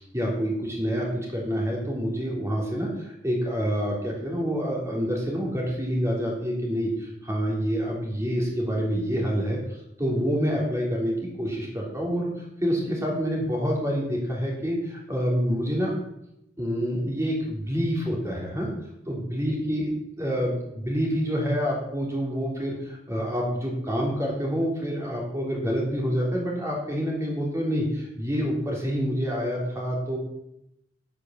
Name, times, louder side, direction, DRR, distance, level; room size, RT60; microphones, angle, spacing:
voice 1, 0.0-2.9 3.2-9.6 10.0-12.3 12.6-15.9 16.6-18.7 19.0-19.9 20.2-30.2, equal, 15° right, -2 dB, 3.1 m, -27 dB
9.0 x 8.5 x 6.2 m, 0.83 s
head